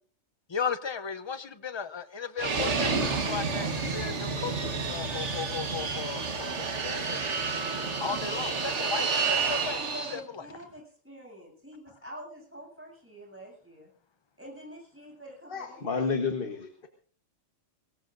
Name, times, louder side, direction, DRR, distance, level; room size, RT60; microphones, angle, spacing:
voice 1, 0.5-7.3 8.0-9.8 10.1-10.4, left 6 dB, 30° left, 0.5 m, -36 dB
Fixed-wing aircraft airplane, 2.4-10.2, right 4 dB, 65° right, 1.7 m, -30 dB
voice 2, 9.8-13.9 14.4-15.9, equal, 10° right, 7.9 m, -46 dB
voice 3, 15.5-16.9, left 5 dB, 45° left, 1.4 m, -31 dB
23.0 x 18.5 x 2.6 m
omnidirectional pair, 1.3 m